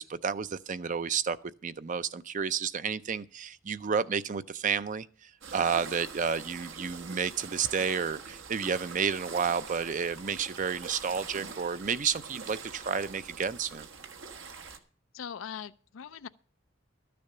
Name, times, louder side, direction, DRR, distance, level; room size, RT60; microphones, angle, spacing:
voice 1, 0.0-1.4 1.6-13.9, right 6 dB, 40° right, 0.5 m, -31 dB
sound 1, 5.4-14.8, right 5 dB, 75° right, 1.3 m, -44 dB
voice 2, 15.1-16.3, left 7 dB, 85° left, 0.5 m, -41 dB
13.0 x 6.9 x 6.6 m
head